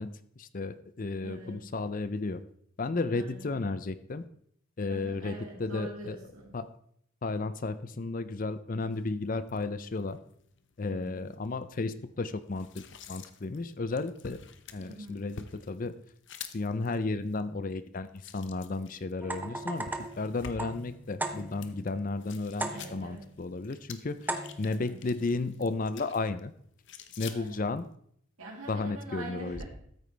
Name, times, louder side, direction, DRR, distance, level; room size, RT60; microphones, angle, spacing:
voice 1, 0.0-2.4 2.8-4.2 4.8-6.2 6.5-6.7 7.2-10.2 10.8-14.4 14.7-16.0 16.5-19.9 20.2-24.3 24.6-26.5 27.2-27.9 28.7-29.6, left 3 dB, 40° left, 14 dB, 0.5 m, -33 dB
voice 2, 1.2-1.6 3.1-3.6 4.9-6.5 10.9-11.3 14.8-15.3 22.7-23.3 24.6-25.0 27.3-27.7 28.4-29.6, right 1 dB, 80° right, -4 dB, 2.9 m, -44 dB
sound 1, 8.9-27.9, left 6 dB, 55° left, 0.8 m, -50 dB
sound 2, 19.2-21.8 22.6-23.2 24.3-24.8, right 2 dB, 10° right, 0.6 m, -37 dB
13.5 x 9.2 x 3.3 m, 0.67 s
head